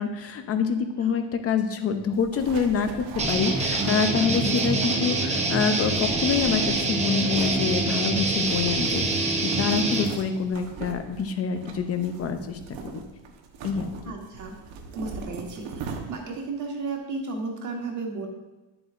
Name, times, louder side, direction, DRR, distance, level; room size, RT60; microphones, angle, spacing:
voice 1, 0.0-13.0 13.6-13.9, left 6 dB, 30° left, 8 dB, 0.6 m, -26 dB
sound 1, 2.1-16.5, right 5 dB, 80° right, 1.2 m, -40 dB
sound 2, 3.2-10.1, right 2 dB, 15° right, 0.7 m, -25 dB
voice 2, 14.0-14.5 14.9-18.3, right 3 dB, 40° right, 1 dB, 1.4 m, -34 dB
11.0 x 7.8 x 2.5 m, 1.1 s
cardioid pair, 175°, 45 cm